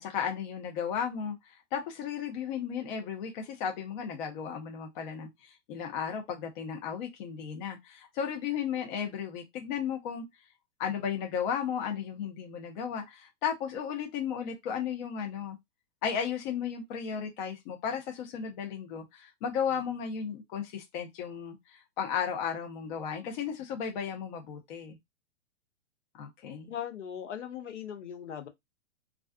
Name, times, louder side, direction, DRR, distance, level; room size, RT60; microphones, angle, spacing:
voice 1, 0.0-1.4 1.7-10.2 10.8-15.6 16.0-25.0 26.1-26.7, left 7 dB, 40° left, 0.7 m, -34 dB
voice 2, 26.6-28.5, left 9 dB, 70° left, 0.9 m, -39 dB
2.4 x 2.3 x 2.3 m
hypercardioid pair, 130°, 37 cm